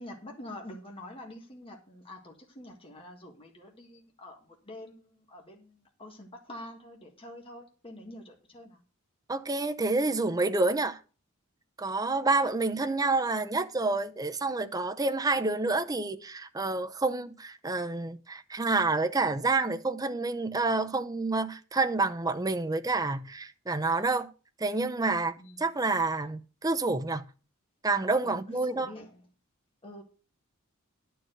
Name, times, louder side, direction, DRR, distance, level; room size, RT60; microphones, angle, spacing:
voice 1, 0.0-8.8 25.4-25.6 28.2-29.3 29.8-30.0, left 1 dB, 25° left, 1.7 m, -46 dB
voice 2, 9.3-11.0 11.8-24.3 24.6-27.2 27.8-28.9, right 3 dB, 15° right, 0.6 m, -28 dB
11.0 x 4.7 x 7.8 m
head